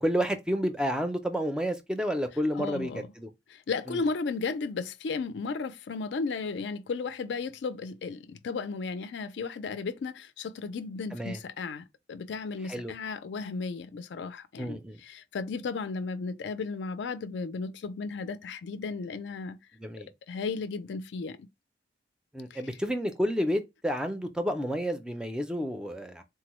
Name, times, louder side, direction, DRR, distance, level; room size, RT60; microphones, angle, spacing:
voice 1, 0.0-3.3 3.9-4.0 11.1-11.4 12.7-12.9 14.6-15.0 19.8-20.1 22.3-26.2, equal, 5° right, 0.4 m, -30 dB
voice 2, 2.5-3.1 3.5-19.6 20.3-21.5 22.5-22.6, left 4 dB, 80° left, 0.4 m, -34 dB
3.6 x 2.0 x 2.9 m
head